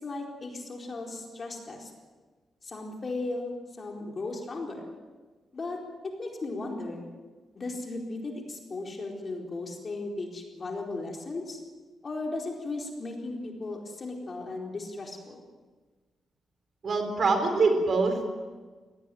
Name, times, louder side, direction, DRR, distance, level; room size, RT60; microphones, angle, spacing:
voice 1, 0.0-1.9 2.6-4.8 5.5-5.8 6.2-7.0 7.5-11.6 12.0-15.4, left 2 dB, 35° left, 1 dB, 4.3 m, -36 dB
voice 2, 16.8-18.3, right 3 dB, 45° right, 6 dB, 4.3 m, -24 dB
22.5 x 18.0 x 9.3 m, 1.4 s
cardioid pair, 135°, 0 cm